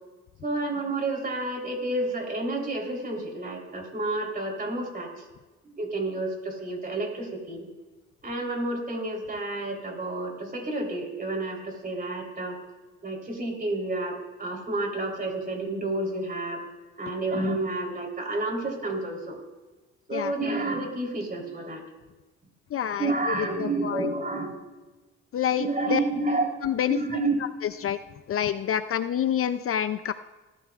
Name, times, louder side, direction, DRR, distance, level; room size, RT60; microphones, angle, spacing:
voice 1, 0.4-5.2 5.6-7.7 8.2-12.6 13.0-16.6 17.0-19.4 20.1-21.8 23.0-24.6 25.6-26.5 26.9-27.3, right 2 dB, 30° right, 1 dB, 3.6 m, -30 dB
voice 2, 22.7-24.1 25.3-26.0 26.6-27.0 27.6-28.0 28.3-30.1, left 9 dB, 50° left, 12 dB, 0.5 m, -27 dB
18.5 x 13.0 x 2.4 m, 1.2 s
cardioid pair, 90°, 30 cm